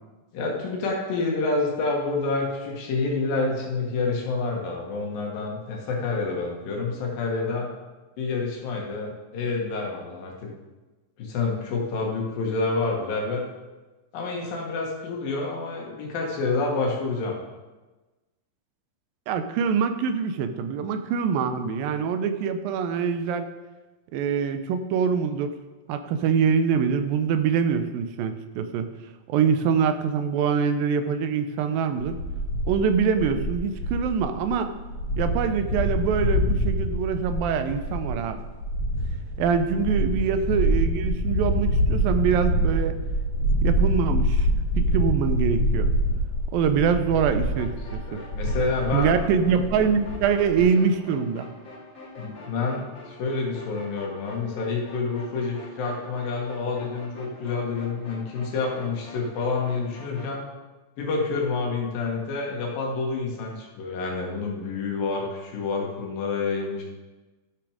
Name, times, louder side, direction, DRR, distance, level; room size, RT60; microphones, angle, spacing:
voice 1, 0.3-7.7 8.2-10.5 11.2-13.4 14.1-17.4 39.7-39.8 48.1-49.2 50.6-50.7 52.2-60.5 61.0-66.8, left 3 dB, 80° left, -1 dB, 3.3 m, -28 dB
voice 2, 19.3-23.5 24.1-25.5 25.9-28.9 29.3-32.2 32.7-34.7 35.2-38.4 39.4-43.0 43.6-44.5 44.8-45.9 46.5-48.2 48.9-51.5, right 6 dB, 90° right, 9 dB, 2.5 m, -24 dB
sound 1, 32.0-50.6, equal, 55° left, 3.7 m, -26 dB
sound 2, 47.5-60.3, left 1 dB, 35° left, 3.0 m, -45 dB
13.0 x 6.0 x 5.0 m, 1.2 s
omnidirectional pair, 4.0 m